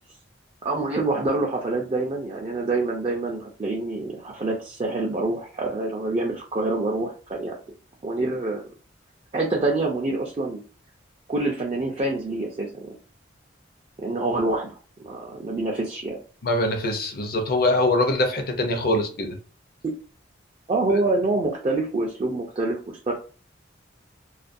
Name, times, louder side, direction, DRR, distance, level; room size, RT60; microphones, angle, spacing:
voice 1, 0.6-7.6 8.0-8.7 9.3-10.6 11.3-13.0 14.0-14.7 15.0-16.2 19.8-19.9 20.7-23.1, right 2 dB, 30° right, 0.4 m, -26 dB
voice 2, 16.4-19.4, left 1 dB, 55° left, 0.6 m, -23 dB
2.4 x 2.2 x 2.5 m
head